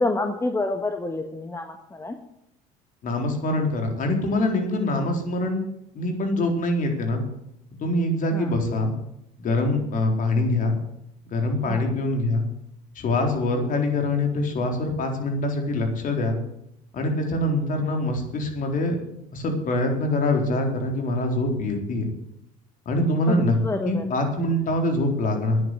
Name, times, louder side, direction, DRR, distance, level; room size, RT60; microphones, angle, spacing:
voice 1, 0.0-2.2 8.3-8.5 11.7-11.8 23.3-24.1, left 2 dB, 15° left, 5 dB, 1.5 m, -28 dB
voice 2, 3.0-5.6 5.9-7.2 7.8-8.9 9.4-10.8 11.3-12.4 13.0-16.4 16.9-19.0 19.3-22.1 22.9-23.6 23.8-25.6, left 1 dB, 50° left, 3 dB, 4.1 m, -24 dB
10.0 x 9.8 x 8.1 m, 0.81 s
supercardioid pair, 90°, 17 cm